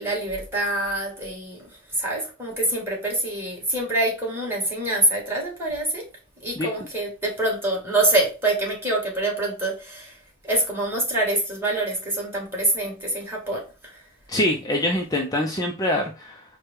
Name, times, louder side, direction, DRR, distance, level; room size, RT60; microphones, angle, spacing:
voice 1, 0.0-6.0 6.4-10.2 10.4-14.0, right 1 dB, 10° right, -3 dB, 2.0 m, -25 dB
voice 2, 14.3-16.4, left 1 dB, 20° left, 1 dB, 0.5 m, -24 dB
4.6 x 2.2 x 4.7 m, 0.32 s
head